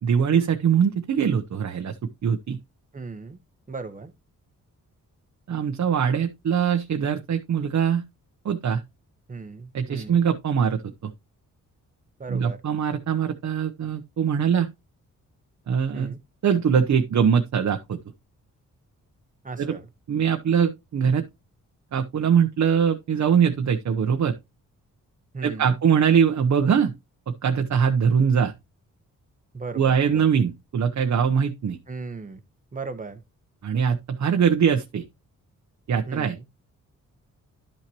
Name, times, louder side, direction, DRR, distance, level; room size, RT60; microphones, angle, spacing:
voice 1, 0.0-1.9 2.2-2.6 5.5-8.0 8.4-8.8 9.7-11.1 12.3-14.7 15.7-16.1 16.4-18.0 19.6-19.8 20.1-21.2 21.9-24.3 25.4-26.9 27.3-28.5 29.7-31.8 33.6-35.0 35.9-36.4, right 7 dB, 55° right, 0.9 m, -22 dB
voice 2, 2.9-3.4 3.7-4.1 9.3-10.2 12.2-12.6 15.9-16.2 19.4-19.9 25.3-25.8 29.5-30.4 31.9-32.4 32.7-33.2 36.1-36.4, right 4 dB, 25° right, 1.1 m, -36 dB
11.5 x 5.9 x 3.0 m
cardioid pair, 90°, 33 cm